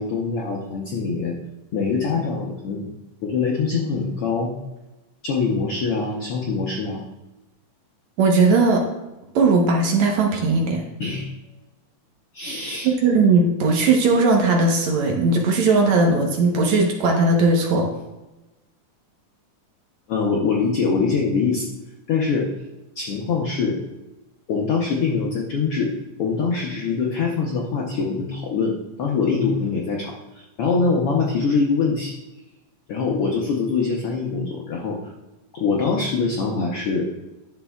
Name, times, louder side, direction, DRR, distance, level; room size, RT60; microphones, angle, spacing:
voice 1, 0.0-1.4 1.7-2.8 3.2-4.5 5.2-7.0 11.0-11.3 12.3-12.9 20.1-21.7 22.1-22.5 22.9-23.8 24.5-25.9 26.2-32.1 32.9-35.0 35.5-37.0, left 4 dB, 85° left, -1 dB, 1.2 m, -23 dB
voice 2, 8.2-8.8 9.4-10.8 12.8-17.9, right 3 dB, 65° right, 1 dB, 2.1 m, -18 dB
11.0 x 6.6 x 2.3 m, 1.0 s
omnidirectional pair, 3.9 m